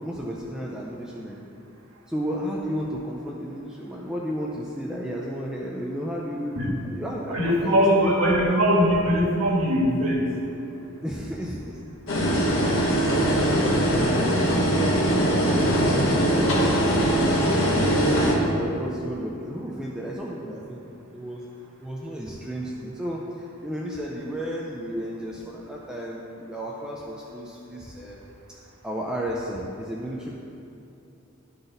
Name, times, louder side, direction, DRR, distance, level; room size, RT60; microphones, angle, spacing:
voice 1, 0.0-1.4 2.1-6.6 6.9-8.1 11.0-11.8 12.5-17.2 17.8-21.4 21.8-28.6 28.8-30.4, equal, 5° right, -3 dB, 0.4 m, -33 dB
voice 2, 7.3-10.3, equal, 80° right, -3 dB, 1.5 m, -21 dB
sound 1, 12.1-18.3, right 1 dB, 70° left, 1.5 m, -21 dB
11.0 x 4.0 x 3.9 m, 2.8 s
head